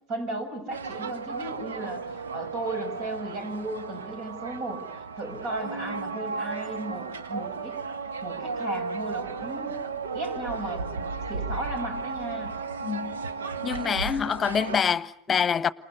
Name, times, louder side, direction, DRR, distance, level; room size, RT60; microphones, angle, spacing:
voice 1, 0.1-2.1 2.3-4.8 5.2-7.8 8.2-9.8 10.1-12.5, right 1 dB, 55° right, 7.4 m, -35 dB
sound 1, 0.7-14.8, right 4 dB, 80° right, 1.3 m, -34 dB
voice 2, 12.8-13.2 13.6-15.7, left 7 dB, 30° left, 1.1 m, -26 dB
30.0 x 27.5 x 6.9 m
hypercardioid pair, 75°, 0 cm